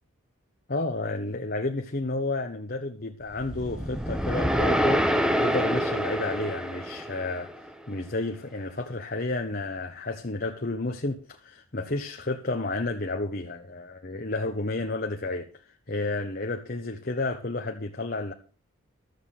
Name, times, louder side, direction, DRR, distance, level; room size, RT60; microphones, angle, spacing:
voice 1, 0.7-7.5 7.9-18.3, left 2 dB, 45° left, 1.2 m, -31 dB
sound 1, 3.4-7.7, equal, 5° right, 1.0 m, -26 dB
13.5 x 8.1 x 6.8 m
head